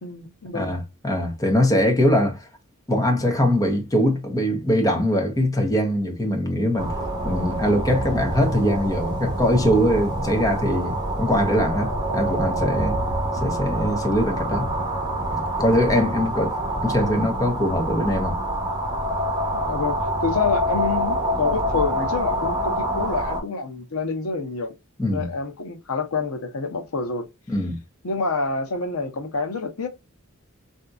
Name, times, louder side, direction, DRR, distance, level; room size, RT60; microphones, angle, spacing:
voice 1, 0.0-0.7 19.7-24.7 25.1-27.3 28.0-29.9, left 4 dB, 85° left, 0.8 m, -27 dB
voice 2, 0.5-2.5 2.9-6.9 7.2-13.0 13.4-14.7 15.3-16.6 16.8-18.4 25.0-25.3 27.5-27.8, equal, 15° left, 0.9 m, -22 dB
sound 1, 6.8-23.4, right 1 dB, 20° right, 1.0 m, -26 dB
3.5 x 2.7 x 2.3 m
head